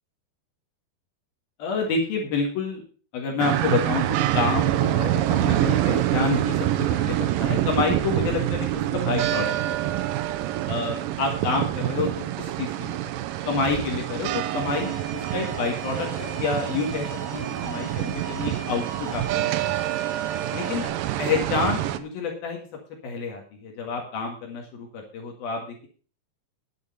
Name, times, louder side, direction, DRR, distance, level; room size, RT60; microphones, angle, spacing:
voice 1, 1.6-2.8 3.1-10.1 10.7-19.7 20.5-20.9 21.2-22.7 23.0-25.9, left 4 dB, 65° left, 0 dB, 3.6 m, -29 dB
sound 1, 3.4-22.0, right 14 dB, 80° right, 2.1 m, -26 dB
Alarm, 14.6-20.9, right 3 dB, 50° right, 4.2 m, -39 dB
11.0 x 8.5 x 5.5 m, 0.40 s
omnidirectional pair, 4.9 m